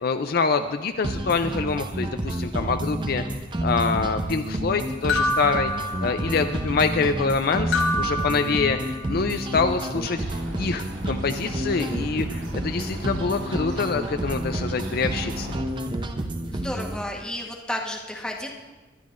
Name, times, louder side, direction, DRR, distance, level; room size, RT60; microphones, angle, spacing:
voice 1, 0.0-3.2 3.6-5.7 6.0-8.8 9.1-10.2 10.6-15.5, left 4 dB, 50° left, 7 dB, 0.4 m, -25 dB
sound 1, 1.0-17.0, right 1 dB, 25° right, 0.7 m, -30 dB
sound 2, 5.1-6.6 7.7-9.2, left 1 dB, 75° left, 1.8 m, -27 dB
sound 3, 10.1-15.6, right 1 dB, 80° right, 2.0 m, -39 dB
voice 2, 16.5-18.5, left 1 dB, 5° left, -1 dB, 1.2 m, -32 dB
19.5 x 11.5 x 2.5 m, 1.2 s
head